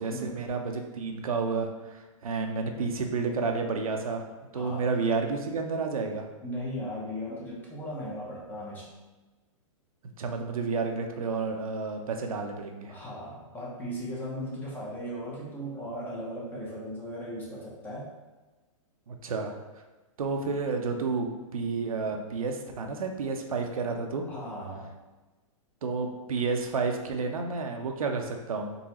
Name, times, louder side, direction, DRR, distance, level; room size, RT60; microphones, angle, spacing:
voice 1, 0.0-4.3 4.5-6.3 10.2-12.9 19.1-19.5 20.2-21.3 21.5-24.3 25.8-28.8, right 4 dB, 90° right, 4 dB, 0.7 m, -30 dB
voice 2, 4.5-4.9 6.4-8.9 12.9-18.1 24.3-24.9, equal, 10° left, -5 dB, 0.8 m, -37 dB
3.9 x 3.7 x 3.0 m, 1.2 s
hypercardioid pair, 155°, 18 cm